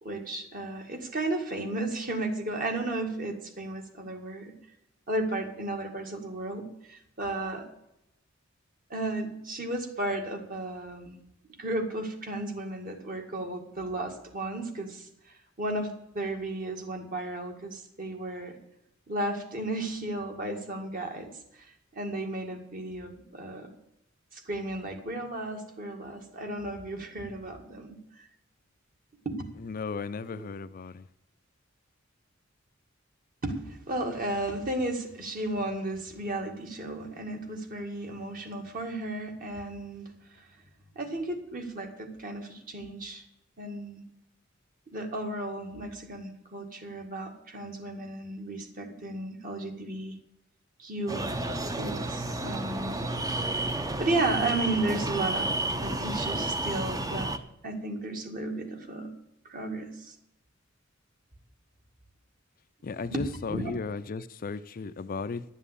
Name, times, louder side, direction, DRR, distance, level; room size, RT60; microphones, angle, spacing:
voice 1, 0.0-4.5 5.1-7.7 8.9-11.2 11.6-18.6 19.1-23.7 24.3-28.3 29.3-29.4 30.3-30.5 33.4-40.4 41.0-43.2 43.6-44.0 44.9-50.2 50.8-51.3 51.8-53.0 53.6-57.3 57.6-59.1 59.5-60.1 63.0-63.2 63.5-63.7, right 2 dB, 45° right, 2.0 m, -34 dB
voice 2, 29.6-31.0 62.8-65.4, left 4 dB, 45° left, 0.5 m, -35 dB
sound 1, 51.1-57.4, right 2 dB, 20° right, 0.7 m, -31 dB
11.0 x 7.4 x 8.3 m
head